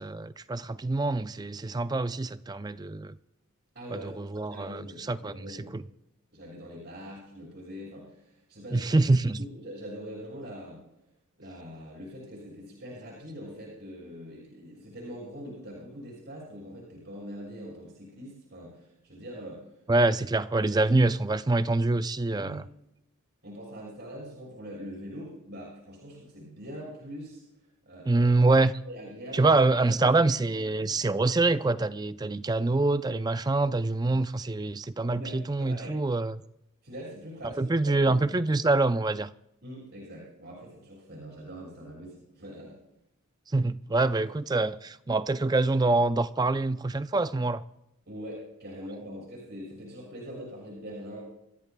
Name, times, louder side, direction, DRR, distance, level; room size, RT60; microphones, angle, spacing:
voice 1, 0.0-3.1 3.9-5.3 5.7-5.8 8.7-9.4 19.9-22.6 28.1-28.7 29.3-36.4 37.6-39.3 43.5-47.6, right 2 dB, 20° right, 0.4 m, -25 dB
voice 2, 3.7-5.7 6.3-10.8 11.4-19.7 22.3-22.7 23.4-27.4 27.8-28.3 28.8-29.5 29.9-30.2 30.5-31.1 35.1-36.0 36.8-38.5 39.6-42.8 48.1-51.2, equal, 55° right, 6.1 m, -43 dB
27.5 x 14.0 x 2.3 m
head